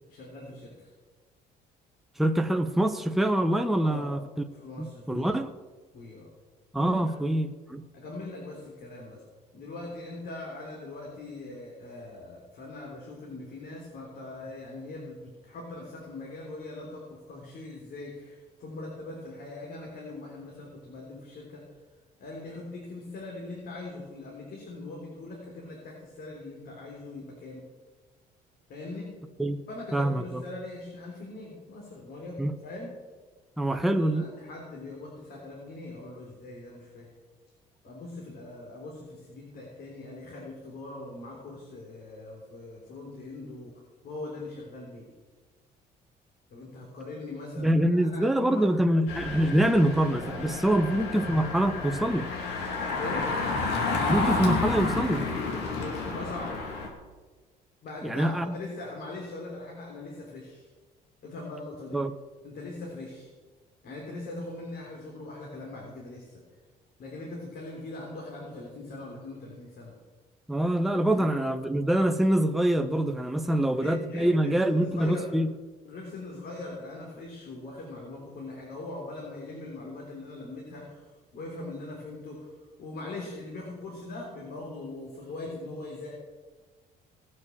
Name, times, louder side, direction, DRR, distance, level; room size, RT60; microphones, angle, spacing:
voice 1, 0.1-0.9 3.8-5.3 5.9-6.3 6.8-7.1 7.9-9.2 9.5-21.6 22.2-27.6 28.7-29.2 29.7-32.9 33.7-37.1 37.8-43.7 44.0-45.1 46.5-48.7 50.6-50.7 53.0-53.3 55.8-56.6 57.8-60.7 61.2-62.0 62.4-63.3 63.8-66.4 67.0-69.9 71.1-71.3 73.4-75.5 75.8-82.5 82.8-86.1, left 2 dB, 60° left, -2 dB, 3.8 m, -41 dB
voice 2, 2.2-4.2 4.8-5.5 6.7-7.8 29.4-29.6 29.9-30.4 32.4-32.5 33.6-34.2 47.6-52.3 54.1-55.3 58.0-58.6 61.9-62.1 70.5-75.5, right 1 dB, ahead, 7 dB, 0.8 m, -25 dB
Engine, 49.1-56.9, left 3 dB, 85° left, 2.9 m, -30 dB
19.0 x 6.7 x 7.4 m, 1.3 s
cardioid pair, 110°, 17 cm